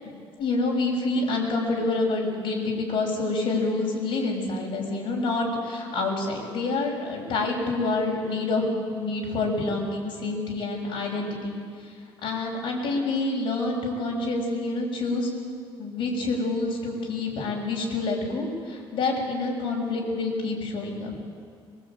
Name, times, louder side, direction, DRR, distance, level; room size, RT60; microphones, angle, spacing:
voice 1, 0.4-11.6 12.2-15.3 15.8-21.1, left 3 dB, 55° left, -1 dB, 6.9 m, -27 dB
22.5 x 22.0 x 9.0 m, 2.2 s
cardioid pair, 150°, 10 cm